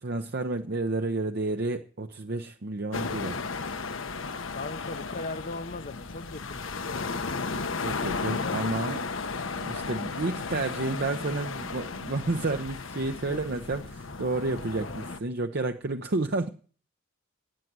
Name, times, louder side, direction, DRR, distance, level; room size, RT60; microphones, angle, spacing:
voice 1, 0.0-3.4 7.8-9.0 9.6-16.5, right 2 dB, 50° right, 6 dB, 0.8 m, -31 dB
sound 1, 2.9-15.2, left 4 dB, 65° left, 1.1 m, -34 dB
voice 2, 4.5-7.2 8.3-8.6 10.2-10.5 13.2-13.4, left 3 dB, 45° left, 12 dB, 0.8 m, -39 dB
14.0 x 9.3 x 9.5 m, 0.44 s
head